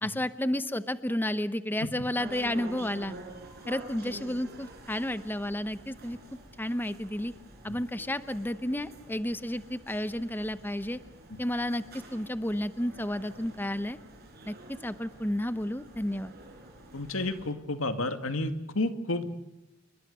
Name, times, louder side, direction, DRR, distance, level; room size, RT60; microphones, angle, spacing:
voice 1, 0.0-3.1 3.7-6.2 6.6-7.3 7.6-11.0 11.4-11.8 12.1-14.0 14.4-16.3, left 1 dB, 10° left, 12 dB, 0.8 m, -31 dB
sound 1, 2.1-17.5, right 1 dB, 50° right, 5.7 m, -48 dB
voice 2, 16.9-19.3, left 2 dB, 85° left, 8 dB, 2.3 m, -31 dB
29.0 x 23.5 x 6.8 m, 0.94 s
head